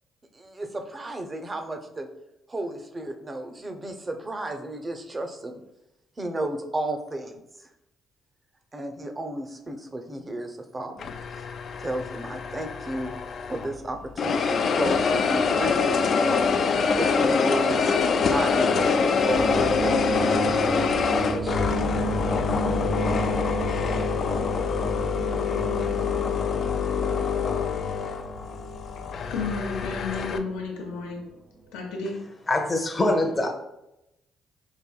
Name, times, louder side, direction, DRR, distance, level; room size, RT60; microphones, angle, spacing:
voice 1, 0.3-2.1 2.5-5.5 6.2-7.7 8.7-11.1 11.4-11.5 11.8-13.1 13.5-16.5 16.9-20.8 21.1-21.7, right 1 dB, 30° right, 0.6 m, -33 dB
sound 1, 11.0-13.8 14.2-30.4, left 5 dB, 60° left, 0.3 m, -25 dB
sound 2, 19.2-31.3 31.6-32.0, right 3 dB, 70° right, 0.5 m, -34 dB
voice 2, 29.3-31.3 31.7-32.3, left 4 dB, 90° left, 0.7 m, -32 dB
voice 3, 32.5-33.5, left 2 dB, 25° left, 0.6 m, -23 dB
5.1 x 2.6 x 2.3 m
supercardioid pair, 60°, 0 cm